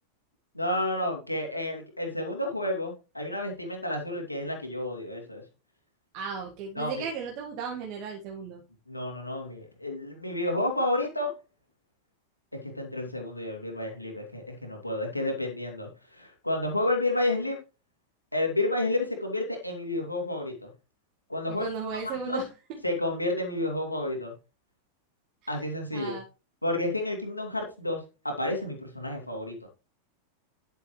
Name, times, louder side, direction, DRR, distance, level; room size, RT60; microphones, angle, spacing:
voice 1, 0.5-5.4 6.7-7.0 8.9-11.3 12.5-17.6 18.3-20.7 21.3-21.7 22.0-22.4 22.8-24.3 25.5-26.2 26.6-29.7, left 1 dB, 85° left, 1 dB, 2.9 m, -30 dB
voice 2, 6.1-8.6 21.5-22.8 25.9-26.2, right 6 dB, 40° right, 0 dB, 1.8 m, -36 dB
10.5 x 8.1 x 3.2 m, 0.31 s
figure-of-eight pair, 90°, 0 cm